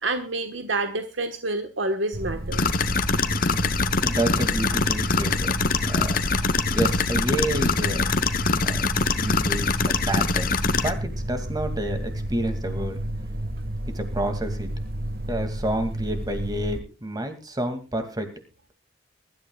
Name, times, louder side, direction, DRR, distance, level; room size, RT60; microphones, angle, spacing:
voice 1, 0.0-2.6, right 2 dB, 85° right, 6 dB, 1.4 m, -28 dB
sound 1, 2.1-16.8, right 1 dB, 50° right, 1.6 m, -31 dB
sound 2, 2.5-10.9, left 4 dB, 50° left, 1.0 m, -24 dB
voice 2, 4.0-5.6 5.8-8.2 8.6-8.8 9.1-13.0 13.9-14.7 15.3-18.3, right 1 dB, 20° right, 7 dB, 2.4 m, -29 dB
23.0 x 13.0 x 2.4 m, 0.30 s
head